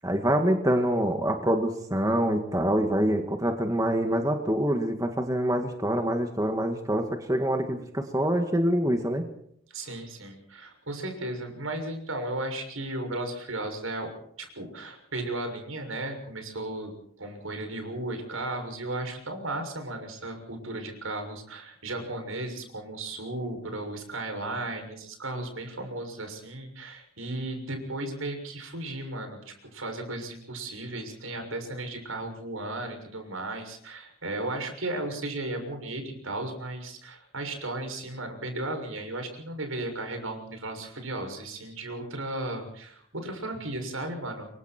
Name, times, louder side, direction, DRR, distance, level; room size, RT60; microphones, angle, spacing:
voice 1, 0.0-9.2, right 1 dB, 15° right, 4 dB, 1.9 m, -25 dB
voice 2, 9.7-14.1 14.4-16.9 17.2-44.5, right 2 dB, 70° right, 5 dB, 6.7 m, -35 dB
28.5 x 24.0 x 4.5 m, 0.68 s
head